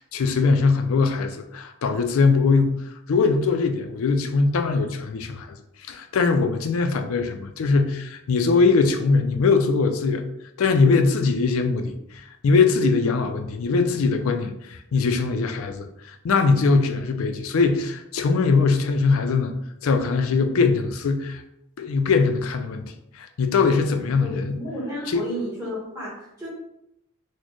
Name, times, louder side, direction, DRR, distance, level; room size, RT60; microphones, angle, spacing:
voice 1, 0.0-5.5 5.8-10.2 10.6-21.4 21.8-24.6 25.1-25.2, left 4 dB, 70° left, 7 dB, 0.4 m, -21 dB
voice 2, 24.2-26.5, equal, 15° right, -8 dB, 1.2 m, -32 dB
4.1 x 2.1 x 3.0 m, 0.80 s
head